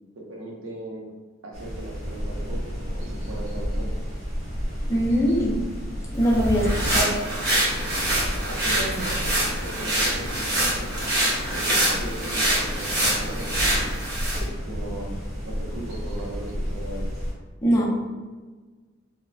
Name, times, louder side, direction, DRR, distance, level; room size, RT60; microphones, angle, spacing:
voice 1, 0.2-1.0 1.4-3.9 8.5-10.9 11.5-14.0 14.7-15.2 15.4-17.0, right 1 dB, 75° right, -1 dB, 0.6 m, -37 dB
sound 1, 1.5-17.3, equal, 35° right, 1.1 m, -32 dB
voice 2, 4.9-5.6 6.1-7.1 17.6-17.9, equal, 15° left, -3 dB, 0.4 m, -22 dB
sound 2, 6.2-14.5, right 1 dB, 55° right, 1.0 m, -25 dB
2.9 x 2.0 x 2.5 m, 1.4 s
head